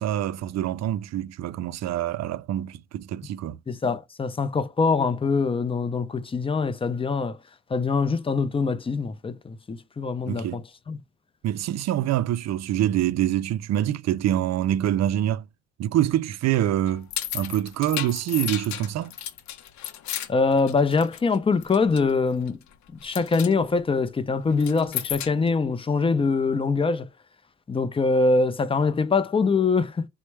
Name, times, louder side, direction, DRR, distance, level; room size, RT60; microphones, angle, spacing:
voice 1, 0.0-3.6 10.3-10.6 11.4-15.5 15.8-17.1 17.3-19.1, right 12 dB, 60° right, 0.4 m, -25 dB
voice 2, 3.7-7.4 7.7-10.6 10.9-11.0 20.3-22.6 23.0-27.1 27.7-30.1, left 4 dB, 20° left, 0.4 m, -23 dB
sound 1, 16.9-21.4 21.6-22.1 22.5-22.7 23.0-23.5 24.5-25.5, left 11 dB, 70° left, 0.6 m, -33 dB
4.4 x 2.1 x 3.1 m
cardioid pair, 90°, 30 cm